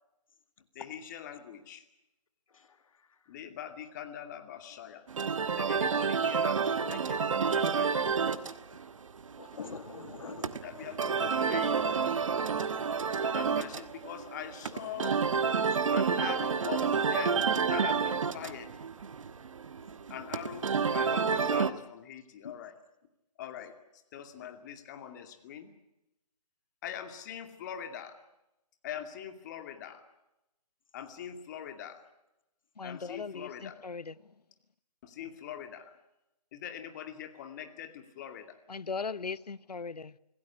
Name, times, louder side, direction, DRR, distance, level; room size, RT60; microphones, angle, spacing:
voice 1, 0.7-1.8 3.3-5.0 5.4-8.1 10.6-11.8 13.2-15.5 15.9-18.7 20.1-22.7 23.4-23.7 24.1-25.7 26.8-28.2 28.8-30.0 30.9-32.0 32.8-33.8 35.0-35.9 36.5-38.6, left 9 dB, 25° left, 2.4 m, -42 dB
voice 2, 2.5-3.2 9.4-10.6 21.4-21.5 22.4-22.5, left 5 dB, 55° left, 2.0 m, -45 dB
sound 1, 5.1-21.7, right 6 dB, 50° right, 1.4 m, -30 dB
voice 3, 32.8-34.3 38.7-40.2, left 5 dB, 75° left, 1.0 m, -39 dB
26.0 x 17.0 x 9.9 m
figure-of-eight pair, 150°, 21 cm